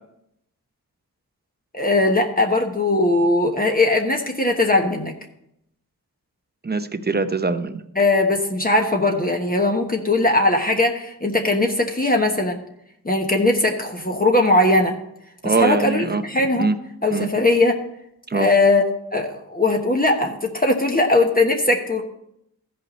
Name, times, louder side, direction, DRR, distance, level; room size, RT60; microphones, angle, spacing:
voice 1, 1.7-5.1 8.0-12.6 13.0-15.0 15.4-16.7 17.0-17.8 18.3-18.8 19.1-22.0, left 2 dB, 25° left, 2 dB, 1.1 m, -19 dB
voice 2, 6.6-7.8 15.4-16.2 16.6-16.8 17.1-17.3 18.3-18.5, right 4 dB, 25° right, 10 dB, 0.7 m, -22 dB
14.5 x 5.5 x 4.2 m, 0.78 s
wide cardioid pair, 75°, 36 cm